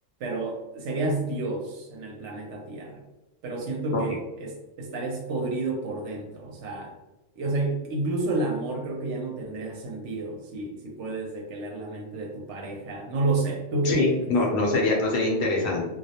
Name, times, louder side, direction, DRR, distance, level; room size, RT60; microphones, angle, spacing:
voice 1, 0.2-3.0 3.4-6.9 7.4-14.2, right 2 dB, 70° right, 1 dB, 0.8 m, -30 dB
voice 2, 13.8-15.9, left 2 dB, 65° left, -1 dB, 0.8 m, -24 dB
2.3 x 2.0 x 2.7 m, 1.0 s
omnidirectional pair, 1.3 m